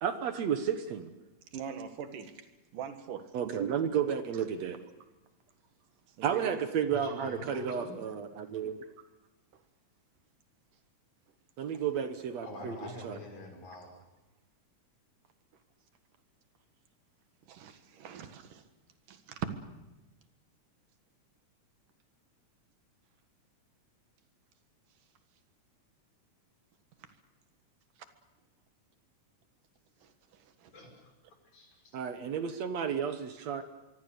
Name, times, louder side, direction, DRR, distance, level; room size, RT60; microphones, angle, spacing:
voice 1, 0.0-1.1 3.3-4.8 6.2-8.8 11.6-13.2 31.9-33.6, right 8 dB, 65° right, 9 dB, 2.2 m, -32 dB
voice 2, 1.5-2.5 2.7-3.4 4.3-4.4 6.1-6.6 7.5-7.6 9.5-9.6 11.7-11.8 17.5-18.7 19.1-19.5 27.0-27.1 28.0-28.1 30.0-30.7, right 8 dB, 85° right, 8 dB, 3.2 m, -43 dB
voice 3, 6.9-8.0 12.4-13.9 30.7-31.1 31.5-31.7, left 3 dB, 65° left, 2 dB, 6.8 m, -44 dB
25.0 x 23.5 x 6.8 m, 1.1 s
omnidirectional pair, 3.7 m